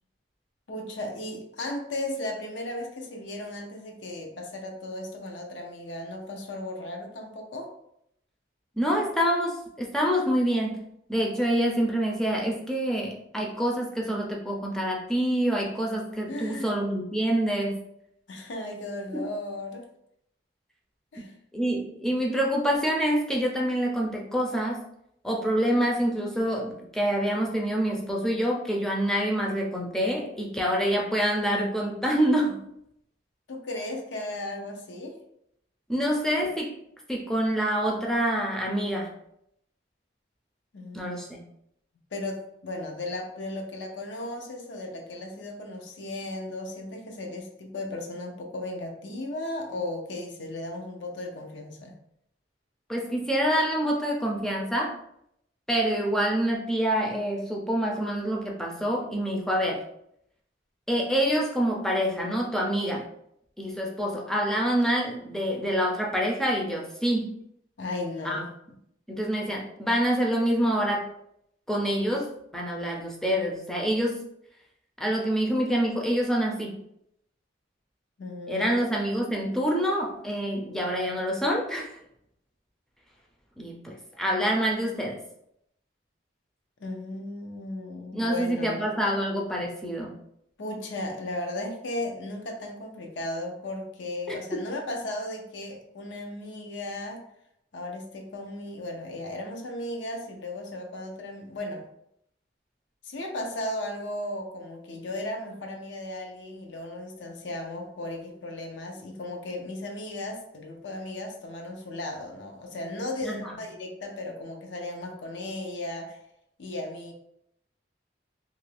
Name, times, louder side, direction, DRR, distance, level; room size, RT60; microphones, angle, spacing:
voice 1, 0.7-7.7 16.3-16.7 18.3-19.9 21.1-21.3 33.5-35.2 40.7-41.1 42.1-52.0 67.8-68.5 78.2-78.8 86.8-88.8 90.6-97.3 97.7-101.9 103.0-116.2 116.6-117.1, left 1 dB, 75° left, 3 dB, 0.5 m, -36 dB
voice 2, 8.8-10.8 11.1-17.8 19.1-19.2 21.5-24.8 25.2-32.6 35.9-36.8 37.1-39.1 40.9-41.4 52.9-55.0 55.7-59.8 60.9-63.1 63.6-67.4 68.2-68.4 69.1-71.0 71.7-74.2 75.0-76.8 78.5-82.0 83.6-85.2 88.1-90.1 94.3-94.4 113.2-113.4, equal, 5° left, -2 dB, 0.4 m, -26 dB
2.7 x 2.5 x 3.2 m, 0.75 s
head